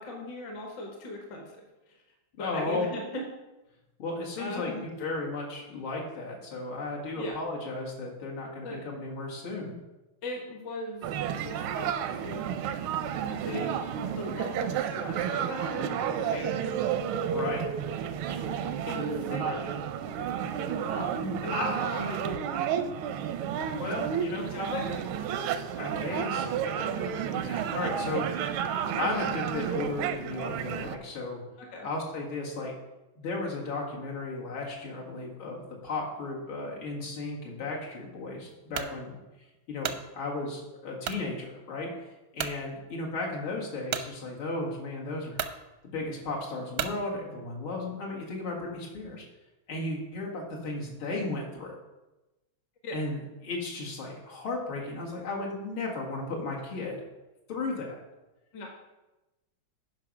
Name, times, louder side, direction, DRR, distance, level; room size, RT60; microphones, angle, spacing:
voice 1, 0.0-1.6 2.4-3.2 4.4-4.8 7.1-7.4 8.6-8.8 10.2-11.1 11.4-12.6 13.3-16.7 18.9-19.7 20.9-22.7 24.4-24.9 31.6-31.9 52.8-53.0 58.5-58.7, left 2 dB, 60° left, 1 dB, 2.0 m, -38 dB
voice 2, 2.4-2.8 4.0-9.7 17.3-17.7 19.4-19.6 21.2-21.4 23.8-24.5 25.8-28.3 29.0-31.4 31.8-32.7 33.2-39.2 39.7-41.9 42.3-45.4 45.9-49.2 49.7-51.7 52.9-57.0 57.5-58.0, left 2 dB, 85° left, -3 dB, 2.7 m, -35 dB
sound 1, 11.0-31.0, right 8 dB, 90° right, 1.5 m, -31 dB
sound 2, 38.7-39.0 39.5-40.0 41.0-41.3 41.8-41.9 42.4-42.6 43.9-44.1 44.9-45.0 45.3-45.6 46.7-47.0, right 9 dB, 70° right, 0.9 m, -33 dB
9.6 x 5.3 x 6.0 m, 1.0 s
omnidirectional pair, 2.2 m